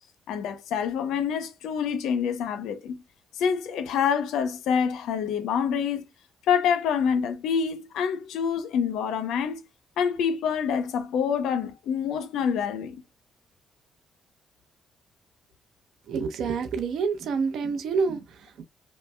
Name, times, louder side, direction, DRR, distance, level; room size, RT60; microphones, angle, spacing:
voice 1, 0.3-3.0 3.4-6.0 6.5-9.6 10.0-13.0, left 7 dB, 85° left, 0.7 m, -26 dB
voice 2, 16.1-18.6, right 5 dB, 70° right, 0.8 m, -28 dB
5.3 x 2.2 x 2.2 m
cardioid pair, 90°, 0 cm